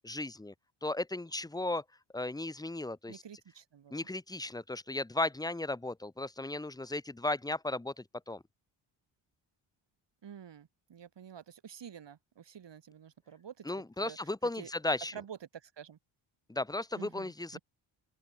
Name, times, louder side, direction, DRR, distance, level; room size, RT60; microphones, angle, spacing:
voice 1, 0.1-0.5 0.8-1.8 2.1-3.1 3.9-7.8 8.3-8.4 13.7-15.1 16.6-17.6, left 2 dB, 10° left, 0.8 m, -35 dB
voice 2, 3.1-4.1 10.2-14.7 15.1-16.0 16.9-17.6, right 8 dB, 60° right, 8.0 m, -49 dB
open air
supercardioid pair, 70°, 49 cm